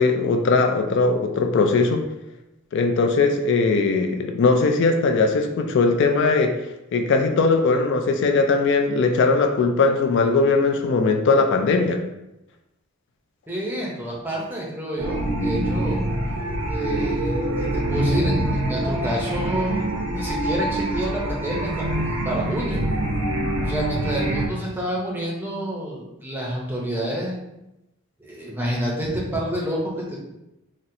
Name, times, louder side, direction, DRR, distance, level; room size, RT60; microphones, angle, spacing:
voice 1, 0.0-2.0 2.7-6.5 6.9-12.0, left 3 dB, 55° left, 5 dB, 0.3 m, -19 dB
voice 2, 13.5-16.0 16.7-22.8 23.6-27.4 28.2-30.2, equal, 10° right, -4 dB, 0.6 m, -28 dB
sound 1, 15.0-24.5, right 1 dB, 70° right, 0.6 m, -25 dB
4.1 x 2.0 x 2.6 m, 0.91 s
head